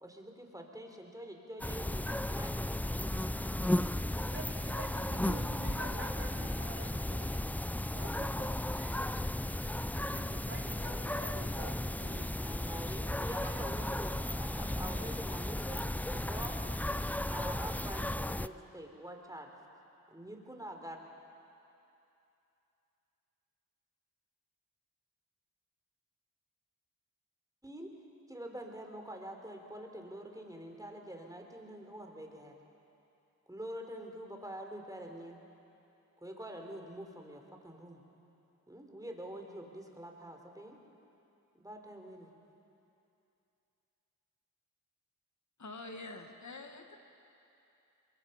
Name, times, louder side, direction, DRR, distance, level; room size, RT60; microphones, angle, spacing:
voice 1, 0.0-3.9 12.4-16.6 17.3-19.5 20.1-21.0 27.6-28.0 28.3-32.6 33.5-35.4 36.2-38.0 38.7-40.8 41.5-42.3, right 1 dB, 10° right, 2 dB, 3.7 m, -46 dB
sound 1, 1.6-18.5, left 1 dB, 5° left, 0.4 m, -35 dB
voice 2, 4.3-7.6 7.9-12.4 13.2-13.7, right 2 dB, 35° right, 0 dB, 3.1 m, -48 dB
voice 3, 45.6-47.0, left 2 dB, 55° left, 4 dB, 1.8 m, -46 dB
22.5 x 22.0 x 5.9 m, 2.8 s
cardioid pair, 40°, 34 cm